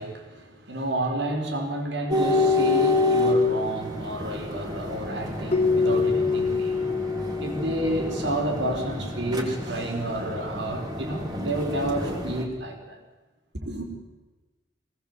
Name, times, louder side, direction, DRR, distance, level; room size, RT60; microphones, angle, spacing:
voice 1, 0.0-6.9 7.4-13.0 13.5-14.0, right 1 dB, 75° right, 3 dB, 5.1 m, -30 dB
sound 1, 2.1-12.4, left 2 dB, 20° right, 3.7 m, -28 dB
Keyboard (musical), 5.5-8.3, left 4 dB, 35° left, 0.9 m, -25 dB
24.0 x 19.5 x 8.3 m, 1.2 s
head